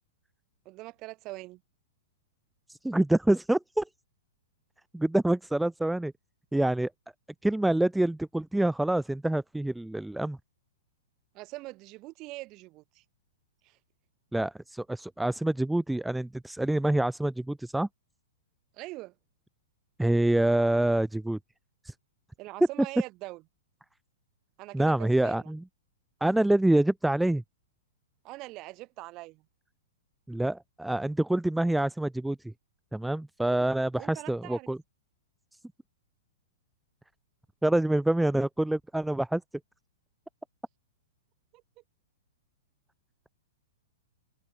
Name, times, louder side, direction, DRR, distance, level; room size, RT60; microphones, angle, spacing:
voice 1, 0.6-1.6 11.3-13.0 13.6-13.8 18.7-19.1 22.4-23.4 24.6-25.5 28.2-29.4 33.4-34.7 41.5-41.6, right 21 dB, 30° right, 3.2 m, -43 dB
voice 2, 2.7-3.8 4.9-6.1 6.5-6.9 7.4-10.4 14.3-17.9 20.0-21.4 21.8-21.9 24.7-25.6 26.2-27.4 30.3-32.5 32.9-34.8 37.6-39.4, right 1 dB, 5° right, 0.4 m, -26 dB
hypercardioid pair, 155°, 0 cm